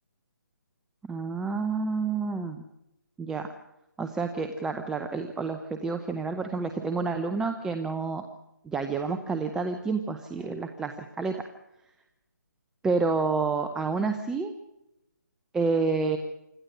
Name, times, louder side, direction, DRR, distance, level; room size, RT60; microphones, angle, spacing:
voice 1, 1.0-2.6 3.2-3.5 4.0-8.2 8.6-11.5 12.8-14.5 15.5-16.2, right 4 dB, 5° right, 6 dB, 0.7 m, -29 dB
26.0 x 13.0 x 7.8 m, 0.88 s
figure-of-eight pair, 155°, 11 cm